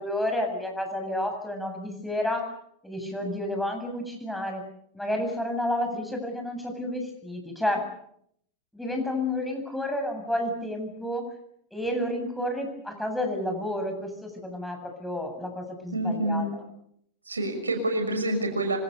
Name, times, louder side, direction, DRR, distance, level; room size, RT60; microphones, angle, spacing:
voice 1, 0.0-2.5 2.8-4.6 4.9-7.8 8.7-11.3 11.7-16.6, left 1 dB, 5° left, 3 dB, 7.9 m, -30 dB
voice 2, 15.9-16.5 17.3-18.8, right 1 dB, 80° right, 6 dB, 6.0 m, -27 dB
26.5 x 26.0 x 7.1 m, 0.70 s
figure-of-eight pair, 90°, 0 cm